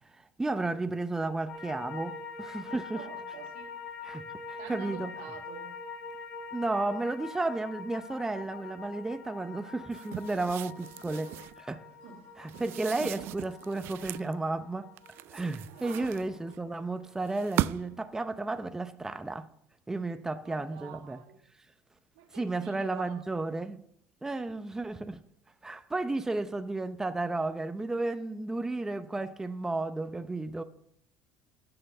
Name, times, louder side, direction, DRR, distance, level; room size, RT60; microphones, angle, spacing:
voice 1, 0.2-3.1 4.0-4.2 4.5-5.1 6.5-11.8 12.4-14.9 15.3-19.5 19.9-21.2 22.3-23.8 24.2-25.2 25.6-30.6, right 2 dB, 10° right, 0.7 m, -33 dB
sound 1, 1.5-17.8 18.1-18.2, left 5 dB, 65° left, 3.9 m, -45 dB
voice 2, 2.7-3.7 4.6-5.7 12.0-12.3 15.7-16.1 20.4-21.4 22.2-23.2, right 8 dB, 85° right, 1.8 m, -47 dB
sound 2, 9.9-11.6 12.5-14.3 15.0-16.6 17.2-18.1, right 15 dB, 65° right, 0.3 m, -37 dB
13.0 x 5.8 x 6.6 m
supercardioid pair, 100°, 4 cm